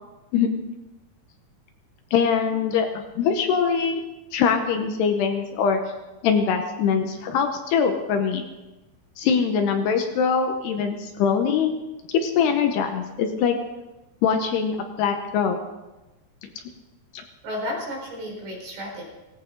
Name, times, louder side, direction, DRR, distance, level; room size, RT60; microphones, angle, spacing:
voice 1, 0.3-0.6 2.1-4.0 4.3-5.8 6.2-8.4 9.2-11.7 12.1-13.6 14.2-15.6 16.4-16.5 17.1-17.2, left 6 dB, 75° left, 5 dB, 2.9 m, -23 dB
voice 2, 17.4-19.1, left 1 dB, 60° right, -2 dB, 6.4 m, -32 dB
17.5 x 17.0 x 3.9 m, 1.1 s
omnidirectional pair, 5.1 m